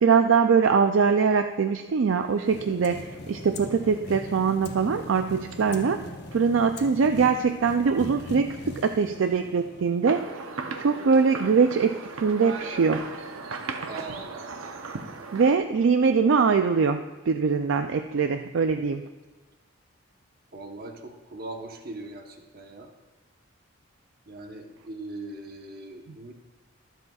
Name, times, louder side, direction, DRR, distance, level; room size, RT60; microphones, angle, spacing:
voice 1, 0.0-6.0 6.3-10.3 10.8-13.1 15.3-19.0, right 5 dB, 65° right, 7 dB, 0.4 m, -22 dB
sound 1, 2.1-10.4, left 1 dB, 55° left, 0.9 m, -40 dB
sound 2, 10.0-15.6, right 4 dB, 90° right, 0.7 m, -36 dB
voice 2, 13.8-14.5 20.5-22.9 24.3-26.3, right 2 dB, 50° right, 3 dB, 1.1 m, -40 dB
23.0 x 7.9 x 2.4 m, 1.2 s
head